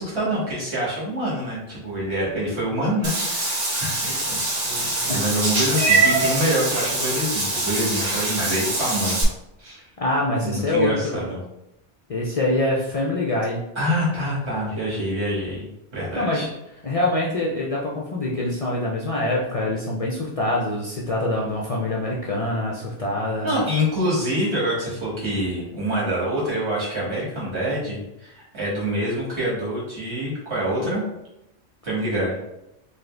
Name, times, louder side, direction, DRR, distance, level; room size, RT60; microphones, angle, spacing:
voice 1, 0.0-9.2 9.6-9.8 10.4-11.4 13.8-15.7 15.9-16.5 23.4-31.0 31.8-32.4, equal, 75° right, -7 dB, 2.0 m, -26 dB
Meow / Water / Bathtub (filling or washing), 3.0-9.2, right 3 dB, 40° right, 0.8 m, -23 dB
voice 2, 10.0-11.2 12.1-13.6 16.2-16.5 16.8-23.5, left 1 dB, 45° left, -3 dB, 0.5 m, -24 dB
3.8 x 2.7 x 3.3 m, 0.87 s
omnidirectional pair, 1.1 m